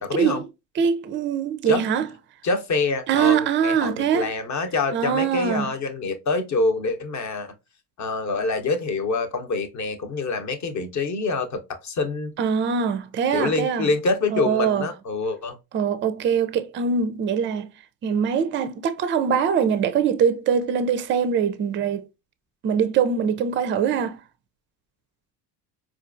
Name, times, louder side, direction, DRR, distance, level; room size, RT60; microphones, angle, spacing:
voice 1, 0.0-0.4 1.7-1.9 2.4-7.5 8.0-12.3 13.3-15.6, left 3 dB, 35° left, 0.8 m, -26 dB
voice 2, 0.8-2.0 3.1-4.3 4.9-5.7 12.4-13.9 14.3-14.9 15.7-17.7 18.0-22.1 22.6-24.2, right 7 dB, 25° right, 0.4 m, -23 dB
4.3 x 2.4 x 2.5 m
hypercardioid pair, 65°, 50 cm